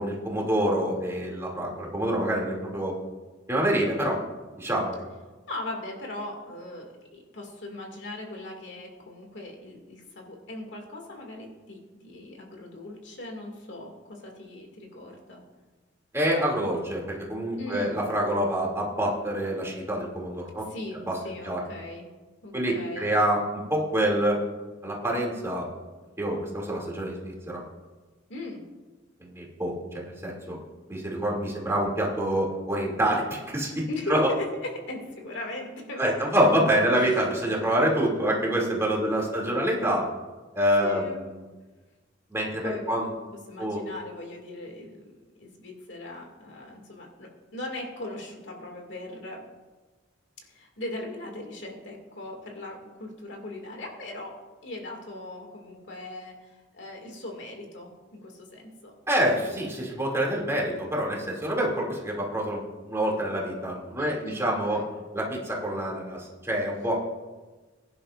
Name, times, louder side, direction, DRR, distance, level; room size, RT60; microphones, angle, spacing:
voice 1, 0.0-2.9 3.5-4.2 4.6-5.0 16.1-20.7 21.1-21.2 21.4-21.6 22.5-24.4 24.8-25.7 26.2-27.6 29.2-30.6 30.9-33.8 34.1-34.3 36.0-40.0 40.5-41.0 42.3-43.1 43.6-43.8 59.1-64.8 65.1-67.1, right 1 dB, 15° right, -3 dB, 2.6 m, -26 dB
voice 2, 5.5-15.4 17.6-18.0 20.5-22.1 22.4-23.1 28.3-28.6 33.9-36.6 36.9-37.2 39.0-39.1 39.5-39.7 40.8-41.2 42.6-43.1 43.5-49.4 50.4-57.9 58.2-58.9 64.0-64.9, left 2 dB, 60° left, 1 dB, 2.3 m, -39 dB
21.5 x 11.0 x 2.5 m, 1.3 s
head